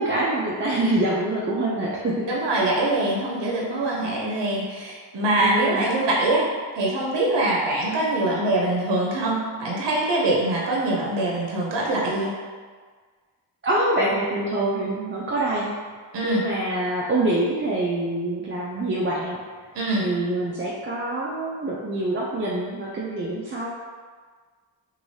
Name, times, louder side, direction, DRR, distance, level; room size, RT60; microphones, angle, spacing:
voice 1, 0.0-2.3 5.4-5.9 13.6-15.7 16.2-19.4 20.0-23.7, right 1 dB, 30° right, -6 dB, 0.5 m, -25 dB
voice 2, 2.3-6.5 6.7-12.3 16.1-16.4 19.7-20.0, right 2 dB, 65° right, -3 dB, 0.7 m, -23 dB
3.1 x 2.7 x 2.7 m, 1.5 s
cardioid pair, 65°, 44 cm